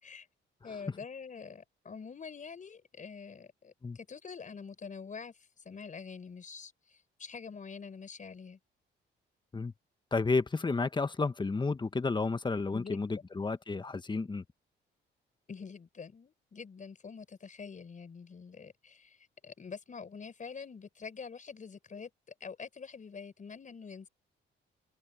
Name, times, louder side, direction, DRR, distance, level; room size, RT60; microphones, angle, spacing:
voice 1, 0.6-5.3 5.6-8.6 12.7-13.3 15.5-22.1 22.4-24.1, left 5 dB, 40° left, 4.7 m, -46 dB
voice 2, 10.1-14.4, left 4 dB, 20° left, 1.3 m, -31 dB
cardioid pair, 90°, 20 cm